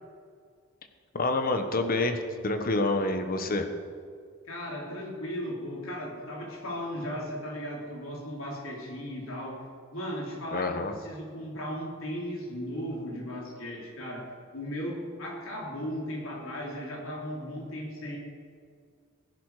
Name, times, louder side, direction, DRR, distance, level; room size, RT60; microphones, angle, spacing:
voice 1, 1.1-3.7 10.5-10.9, left 2 dB, 45° left, 7 dB, 1.3 m, -27 dB
voice 2, 4.5-9.6 9.9-18.2, equal, 80° left, -2 dB, 3.8 m, -36 dB
16.5 x 11.5 x 5.0 m, 2.1 s
head